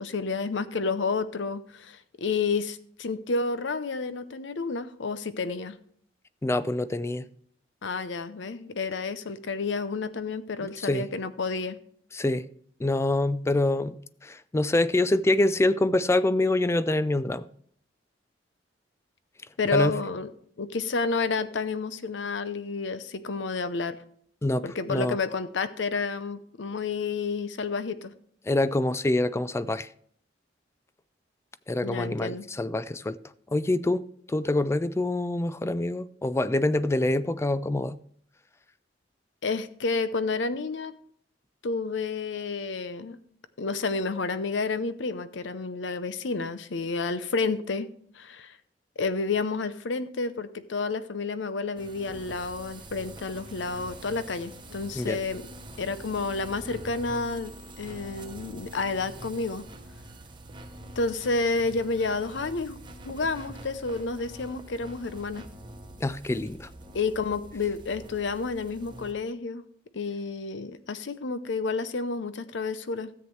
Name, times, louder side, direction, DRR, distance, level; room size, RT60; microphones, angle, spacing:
voice 1, 0.0-5.7 7.8-11.8 19.6-20.3 20.6-24.0 24.6-28.1 31.8-32.4 39.4-40.9 41.6-43.2 43.6-48.6 49.0-55.4 55.8-59.7 61.0-62.8 63.0-65.5 66.9-69.6 69.9-73.1, left 4 dB, 70° left, 0.6 m, -30 dB
voice 2, 6.4-7.3 10.6-11.1 12.1-12.5 12.8-17.5 19.7-19.9 24.4-25.2 28.5-29.9 31.7-33.2 33.5-38.0 55.0-55.2 66.0-66.7, left 2 dB, 15° left, 0.3 m, -26 dB
sound 1, 51.8-69.1, right 1 dB, 25° right, 1.0 m, -45 dB
13.5 x 8.0 x 3.2 m
head